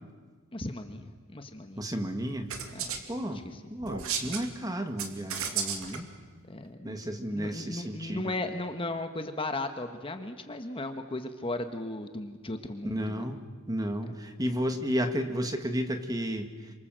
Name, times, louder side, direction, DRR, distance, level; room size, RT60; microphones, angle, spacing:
voice 1, 0.5-1.9 2.7-3.0 3.3-3.6 6.5-7.0 7.3-13.3 14.1-14.2, left 2 dB, 25° left, 7 dB, 1.4 m, -36 dB
voice 2, 1.8-2.5 3.1-3.4 3.7-6.1 6.8-8.3 12.8-13.4 13.7-16.7, equal, 15° right, 6 dB, 1.9 m, -32 dB
sound 1, 2.5-3.0 3.8-4.5 5.0-6.0, right 7 dB, 75° right, 2.6 m, -33 dB
28.5 x 25.5 x 7.7 m, 1.5 s
head